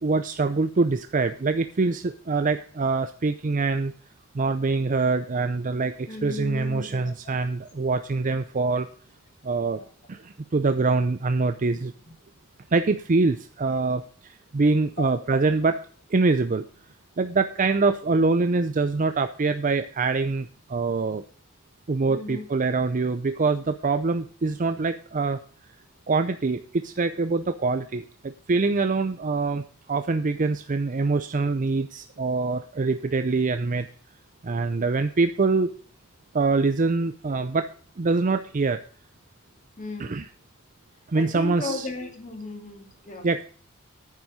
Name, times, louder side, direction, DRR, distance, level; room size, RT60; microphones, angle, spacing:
voice 1, 0.0-3.9 4.3-8.9 9.4-9.8 10.1-11.9 12.7-15.8 16.1-16.7 17.2-21.2 21.9-25.4 26.1-33.9 34.4-35.7 36.3-37.7 38.0-38.8 40.0-40.3 41.1-41.9 43.2-43.4, right 3 dB, 40° right, 9 dB, 0.5 m, -24 dB
voice 2, 6.1-7.1 9.7-9.9 15.0-15.1 17.6-17.7 22.1-22.4 39.8-40.2 41.1-43.3, left 2 dB, 35° left, 3 dB, 2.6 m, -35 dB
9.6 x 7.5 x 5.0 m, 0.43 s
head